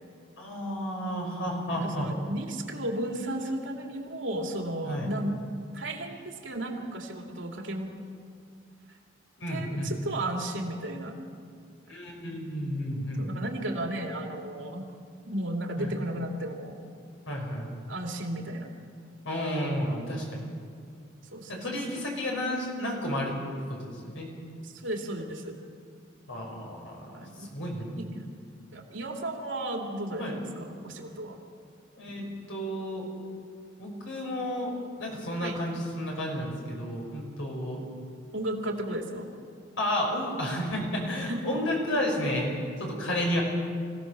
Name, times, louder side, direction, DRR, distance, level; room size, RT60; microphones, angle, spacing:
voice 1, 0.4-2.1 4.8-5.1 9.4-9.9 11.8-13.3 15.8-15.9 17.3-17.7 19.2-20.4 21.5-23.4 23.7-24.3 26.3-27.9 30.2-30.4 32.0-33.1 33.8-34.7 35.0-37.8 39.8-42.5 42.8-43.4, equal, 90° left, -1 dB, 5.9 m, -32 dB
voice 2, 1.7-5.4 5.7-8.0 9.5-11.2 11.9-12.0 13.2-14.9 15.3-16.7 17.9-18.7 21.3-21.6 24.6-25.6 27.1-27.5 28.0-28.2 28.7-31.4 35.4-35.6 38.3-39.3 41.2-41.4, right 1 dB, 90° right, 2 dB, 2.8 m, -34 dB
25.0 x 16.5 x 6.7 m, 2.3 s
head